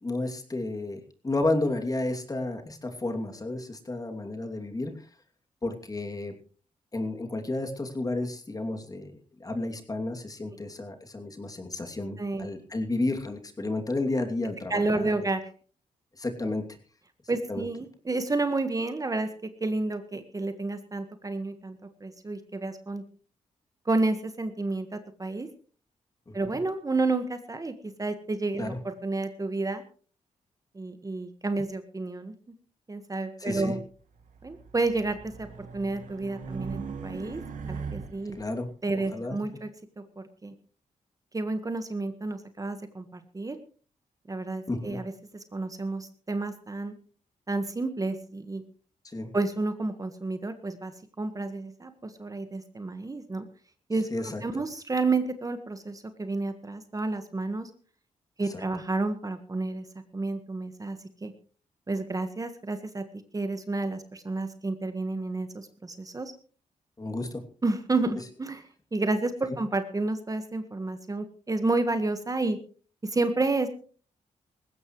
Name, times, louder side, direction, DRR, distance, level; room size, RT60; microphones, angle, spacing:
voice 1, 0.0-4.9 5.6-6.3 6.9-15.2 16.2-16.6 17.5-17.7 26.3-26.6 28.6-28.8 33.4-33.7 38.4-38.7 39.1-39.4 44.7-45.0 49.0-49.3 54.1-54.4 58.5-58.6 67.0-67.4 69.5-69.6, left 2 dB, 25° left, 4 dB, 2.7 m, -32 dB
voice 2, 12.2-12.5 14.7-15.4 17.3-19.3 19.6-23.0 23.8-25.5 26.3-27.7 28.0-29.8 30.7-32.3 32.9-33.8 34.4-35.5 35.7-37.4 37.7-38.4 38.8-39.7 40.0-40.5 41.3-43.6 44.3-45.0 45.5-46.9 47.5-48.6 49.3-50.9 51.2-53.4 53.9-57.7 58.4-59.8 60.1-61.3 61.9-63.0 63.3-66.3 67.6-68.6 68.9-72.6 73.0-73.7, right 3 dB, 25° right, 9 dB, 1.5 m, -30 dB
Race car auto racing, 34.1-38.5, right 5 dB, 80° right, 2.5 m, -40 dB
19.5 x 16.0 x 3.2 m, 0.41 s
cardioid pair, 85°, 13 cm